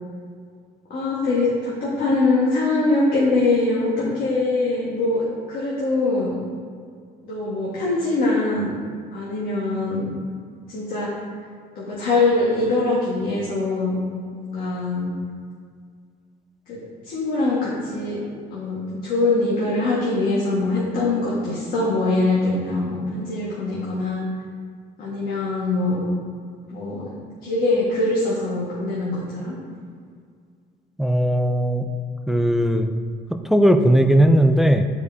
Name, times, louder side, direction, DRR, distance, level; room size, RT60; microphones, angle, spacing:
voice 1, 0.9-6.3 7.2-8.7 9.1-10.1 10.7-11.2 11.8-14.0 14.3-15.1 16.7-16.8 17.0-18.2 18.5-24.2 25.0-26.0 26.7-27.0 27.4-29.6, left 2 dB, 60° left, -7 dB, 1.8 m, -23 dB
voice 2, 31.0-31.9 32.3-32.9 33.3-34.9, right 1 dB, ahead, 6 dB, 0.4 m, -17 dB
11.5 x 4.9 x 2.8 m, 2.1 s
cardioid pair, 110°, 17 cm